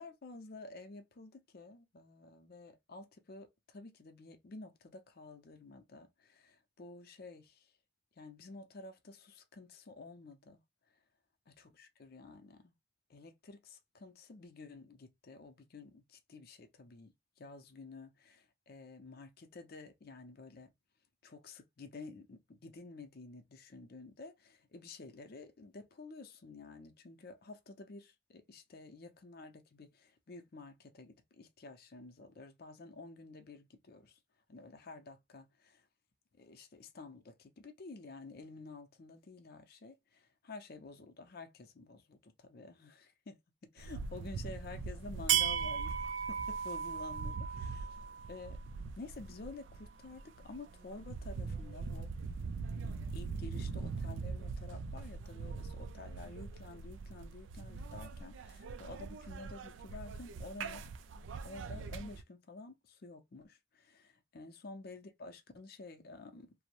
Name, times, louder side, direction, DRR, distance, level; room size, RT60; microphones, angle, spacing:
voice 1, 0.0-7.7 8.2-10.6 11.5-12.7 13.1-20.7 21.2-34.2 34.5-35.8 36.4-46.0 46.3-48.0 48.3-48.6 49.0-52.1 53.1-60.8 61.4-66.5, left 3 dB, 55° left, 0.5 m, -51 dB
sound 1, 43.8-62.2, right 6 dB, 80° right, 0.3 m, -39 dB
2.6 x 2.0 x 2.8 m
head